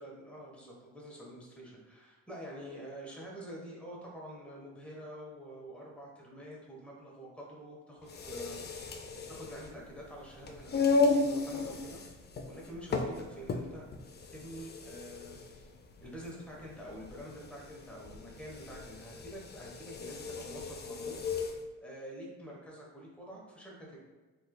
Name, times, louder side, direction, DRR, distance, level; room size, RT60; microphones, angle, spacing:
voice 1, 0.0-9.0 9.3-13.8 14.3-15.7 16.0-21.2 21.8-24.0, equal, 5° left, -3 dB, 1.0 m, -47 dB
sound 1, 8.0-21.6, left 3 dB, 35° left, 0.4 m, -35 dB
3.3 x 3.2 x 2.2 m, 1.3 s
cardioid pair, 90°, 30 cm